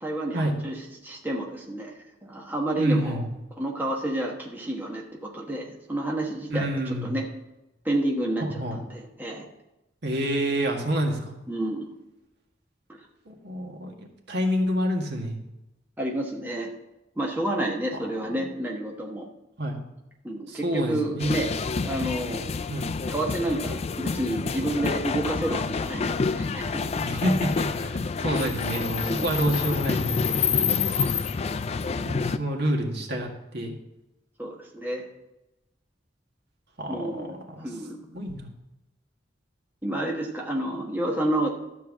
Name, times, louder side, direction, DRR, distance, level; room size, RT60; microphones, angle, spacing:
voice 1, 0.0-1.9 2.2-3.2 3.6-7.3 7.8-8.4 8.7-9.4 11.5-11.9 16.0-16.7 17.2-19.3 20.2-21.5 21.8-22.5 23.1-26.9 29.0-29.3 34.4-35.1 36.9-38.2 39.8-41.5, right 1 dB, 10° right, -1 dB, 1.2 m, -30 dB
voice 2, 2.8-3.3 6.5-7.1 8.4-8.8 10.0-11.3 13.3-15.4 18.4-18.5 19.6-19.8 20.5-21.4 22.7-22.9 27.0-30.4 32.0-33.7 36.8-37.3 37.6-37.7 38.1-38.5, equal, 60° right, 1 dB, 1.8 m, -28 dB
sound 1, 21.2-32.4, left 5 dB, 35° left, 0.4 m, -28 dB
12.5 x 4.6 x 7.2 m, 0.96 s
head